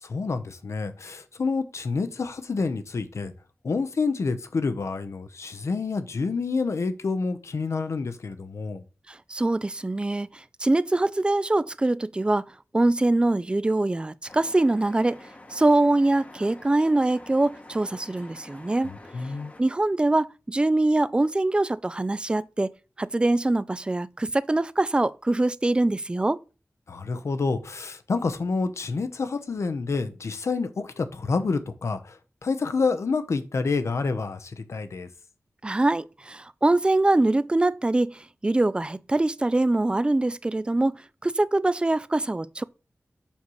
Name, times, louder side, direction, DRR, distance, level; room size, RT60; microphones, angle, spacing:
voice 1, 0.0-3.3 3.6-8.8 18.8-19.5 26.9-35.1, left 4 dB, 75° left, 0.8 m, -28 dB
voice 2, 9.1-12.4 12.7-18.9 19.6-22.7 23.0-26.4 35.6-42.6, right 2 dB, 20° right, 0.3 m, -23 dB
sound 1, 14.3-19.6, left 1 dB, 30° left, 1.0 m, -47 dB
7.2 x 5.4 x 3.1 m
wide cardioid pair, 85°, 5 cm